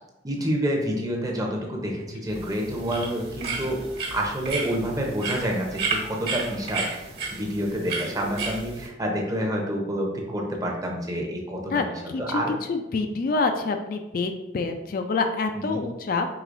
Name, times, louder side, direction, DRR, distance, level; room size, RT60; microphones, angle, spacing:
voice 1, 0.2-3.8 4.1-6.9 7.3-11.8 12.2-12.6 15.5-15.8, equal, 20° right, 0 dB, 0.7 m, -28 dB
sound 1, 2.3-8.9, right 4 dB, 55° right, 1.3 m, -33 dB
voice 2, 12.1-12.4 12.7-16.3, left 4 dB, 50° left, 6 dB, 0.3 m, -26 dB
4.8 x 3.6 x 2.6 m, 0.94 s
head